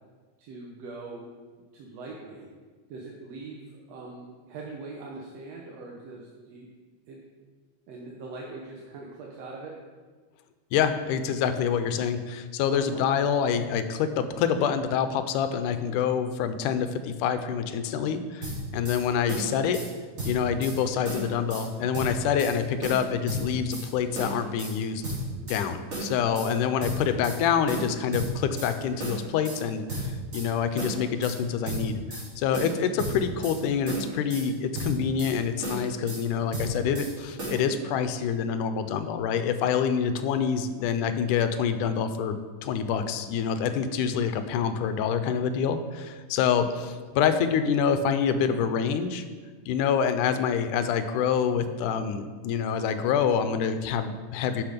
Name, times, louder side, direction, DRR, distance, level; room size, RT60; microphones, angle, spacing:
voice 1, 0.4-1.3 1.7-2.5 2.9-6.7 7.1-7.2 7.9-9.7 12.7-13.1 26.3-26.7, right 3 dB, 65° right, -2 dB, 2.0 m, -42 dB
voice 2, 10.7-19.8 20.2-25.0 25.4-42.3 42.6-49.2 49.7-54.6, left 7 dB, 85° left, 9 dB, 2.2 m, -26 dB
sound 1, 18.4-19.0 19.3-19.9 20.2-20.8 21.1-21.7 21.9-22.5 22.8-23.9 24.1-24.7 25.0-25.6 25.9-26.5 26.8-27.4 27.7-28.7 29.0-29.6 29.9-30.5 30.8-31.4 31.6-32.3 32.5-33.6 33.9-34.5 34.7-35.3 35.6-36.2 36.5-37.1 37.4-37.6, right 1 dB, 40° right, 4.5 m, -34 dB
12.0 x 6.4 x 5.1 m, 1.5 s
omnidirectional pair, 3.6 m